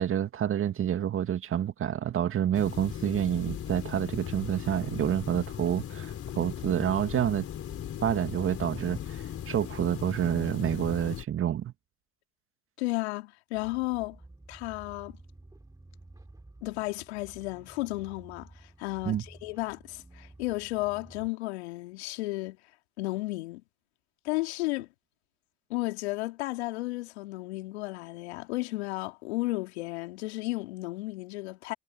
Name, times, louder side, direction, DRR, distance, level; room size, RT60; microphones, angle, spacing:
voice 1, 0.0-7.5 8.0-11.7 19.1-19.2, right 10 dB, 40° right, 1.9 m, -28 dB
sound 1, 2.5-11.2, left 10 dB, 45° left, 4.9 m, -38 dB
voice 2, 12.8-14.2 14.5-15.2 16.6-18.5 18.8-22.6 23.0-23.6 24.2-24.9 25.7-31.7, left 20 dB, 75° left, 2.7 m, -33 dB
sound 2, 13.5-21.3, right 2 dB, 10° right, 7.2 m, -52 dB
hypercardioid pair, 75°, 33 cm